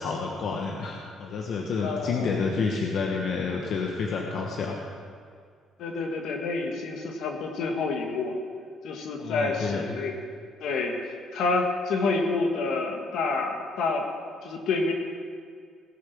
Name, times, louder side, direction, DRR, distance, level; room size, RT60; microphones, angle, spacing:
voice 1, 0.0-4.8 9.2-10.0, left 4 dB, 55° left, 0 dB, 1.1 m, -29 dB
voice 2, 1.8-2.3 5.8-8.4 8.8-10.2 10.6-14.1 14.4-14.9, left 3 dB, 70° left, 2 dB, 1.8 m, -28 dB
18.0 x 6.5 x 6.0 m, 2.1 s
cardioid pair, 130°, 0 cm